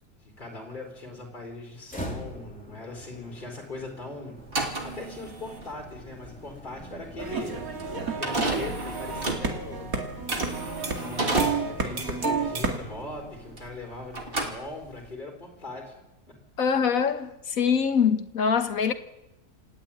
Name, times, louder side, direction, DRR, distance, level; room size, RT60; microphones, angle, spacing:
voice 1, 0.2-4.4 4.8-7.6 8.1-9.9 11.0-16.0, left 2 dB, 30° left, 4.2 m, -40 dB
sound 1, 1.9-13.9, equal, 5° left, 3.2 m, -43 dB
sound 2, 4.4-13.8 14.1-15.1, right 2 dB, 35° right, 3.0 m, -32 dB
sound 3, 7.2-12.8, right 4 dB, 60° right, 2.8 m, -31 dB
voice 2, 16.6-18.9, left 6 dB, 60° left, 1.7 m, -24 dB
28.5 x 11.0 x 8.9 m
omnidirectional pair, 1.7 m